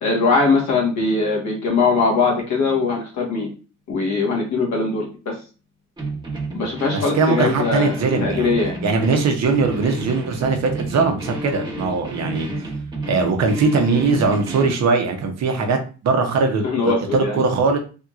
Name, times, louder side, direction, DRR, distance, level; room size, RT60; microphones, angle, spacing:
voice 1, 0.0-3.5 3.9-5.3 6.5-7.9 8.2-8.7 16.6-17.4, left 4 dB, 65° left, -1 dB, 1.4 m, -21 dB
sound 1, 6.0-14.8, right 1 dB, 15° right, 1.1 m, -30 dB
voice 2, 6.9-8.6 8.8-12.5 13.1-15.8 16.0-17.8, right 4 dB, 60° right, 4 dB, 0.8 m, -20 dB
3.5 x 2.8 x 2.4 m, 0.35 s
cardioid pair, 90°, 30 cm